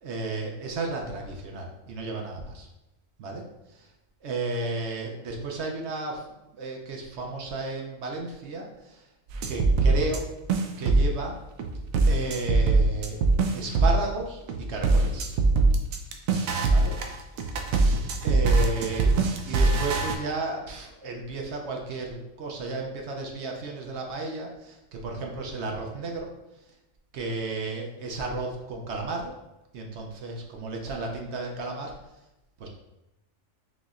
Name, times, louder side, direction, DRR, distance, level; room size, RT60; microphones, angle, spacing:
voice 1, 0.0-2.7 3.2-3.9 4.2-9.1 9.5-10.3 10.8-11.4 12.1-13.3 13.5-15.3 16.7-17.0 18.2-19.2 19.5-26.3 27.1-29.3 29.7-31.9 32.6-32.7, right 3 dB, 65° right, 1 dB, 0.9 m, -33 dB
sound 1, 9.3-10.2 10.5-11.2 11.6-14.1 14.5-20.1, right 3 dB, 85° right, 1.0 m, -23 dB
6.0 x 3.0 x 2.5 m, 0.93 s
omnidirectional pair, 1.4 m